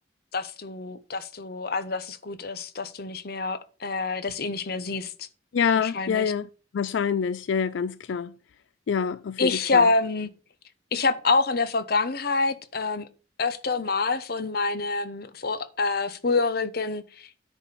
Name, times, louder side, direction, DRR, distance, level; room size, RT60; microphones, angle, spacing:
voice 1, 0.3-5.3 5.8-6.3 9.4-10.3 10.9-13.1 13.4-17.3, left 3 dB, 55° left, 0.9 m, -27 dB
voice 2, 5.5-6.5 6.7-8.3 8.9-9.8, left 6 dB, 85° left, 0.4 m, -26 dB
10.0 x 4.3 x 6.5 m
head